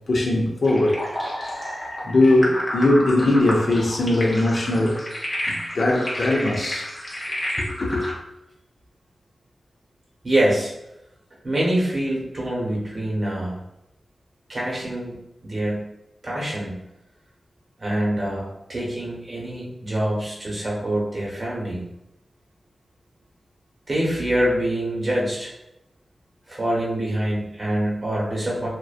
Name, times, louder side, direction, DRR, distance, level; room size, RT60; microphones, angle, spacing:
voice 1, 0.1-5.0 5.7-6.9 7.6-8.0, left 2 dB, 60° left, 0.5 m, -21 dB
sound 1, 0.6-8.1, equal, 30° left, 0.8 m, -31 dB
voice 2, 10.2-10.7 11.4-13.6 14.5-15.2 15.4-15.8 16.2-16.7 17.8-21.8 23.9-25.5 26.5-28.7, right 1 dB, 40° right, 1.0 m, -25 dB
2.5 x 2.2 x 2.4 m
wide cardioid pair, 80°, 0 cm